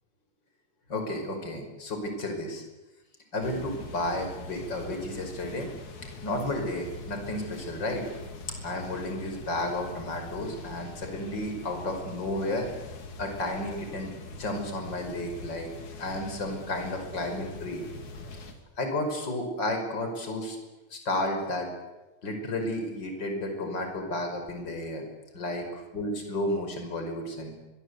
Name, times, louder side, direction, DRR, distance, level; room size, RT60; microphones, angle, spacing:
voice 1, 0.9-2.6 3.3-5.7 6.2-8.0 8.6-12.7 13.2-14.1 14.4-15.7 16.0-17.8 18.8-20.6 20.9-21.7 22.2-25.0 25.3-27.5, left 1 dB, 35° left, 4 dB, 5.9 m, -32 dB
sound 1, 3.4-18.5, left 2 dB, 85° left, 4.4 m, -43 dB
28.0 x 24.0 x 8.2 m, 1.1 s
omnidirectional pair, 3.3 m